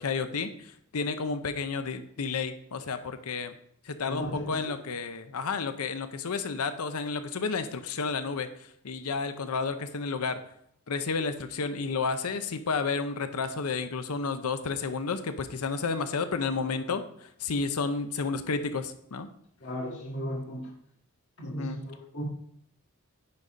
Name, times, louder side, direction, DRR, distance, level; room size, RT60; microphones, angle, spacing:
voice 1, 0.0-3.5 3.8-10.4 10.9-19.3 21.4-21.8, left 4 dB, 90° left, 10 dB, 0.7 m, -31 dB
voice 2, 4.1-4.8 19.6-20.7 21.4-22.2, equal, 55° left, -3 dB, 1.9 m, -36 dB
9.6 x 4.1 x 5.0 m, 0.70 s
head